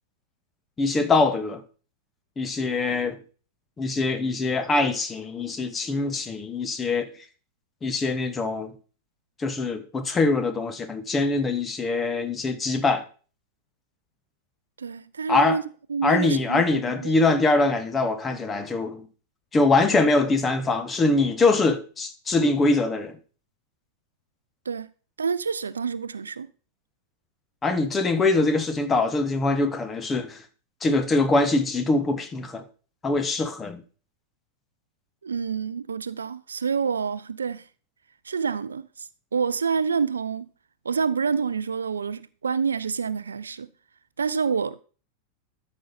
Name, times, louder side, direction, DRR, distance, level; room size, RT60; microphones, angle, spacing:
voice 1, 0.8-1.6 2.4-3.2 3.8-7.1 7.8-8.7 9.4-13.0 15.3-15.6 16.0-19.1 19.5-23.2 27.6-30.4 30.8-32.6 33.0-33.8, left 3 dB, 20° left, 1.1 m, -23 dB
voice 2, 14.8-15.6 15.9-17.2 24.7-24.9 25.2-26.5 35.2-37.6 38.2-40.5 40.8-43.7 44.2-44.8, right 6 dB, 70° right, 0.4 m, -28 dB
13.0 x 5.4 x 4.1 m
figure-of-eight pair, 90°, 0 cm